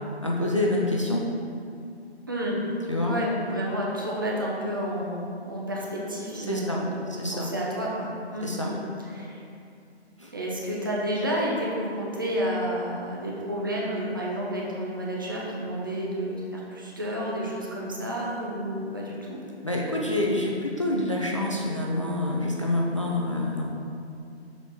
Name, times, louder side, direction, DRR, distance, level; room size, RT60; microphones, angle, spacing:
voice 1, 0.2-1.2 2.9-3.1 6.4-6.9 7.2-7.5 8.4-8.7 10.2-10.3 19.6-23.7, left 1 dB, 30° left, -3 dB, 0.4 m, -27 dB
voice 2, 2.3-2.6 3.0-8.8 9.1-9.4 10.3-19.4, equal, 20° right, -4 dB, 0.6 m, -30 dB
6.8 x 4.4 x 4.3 m, 2.5 s
figure-of-eight pair, 150°, 33 cm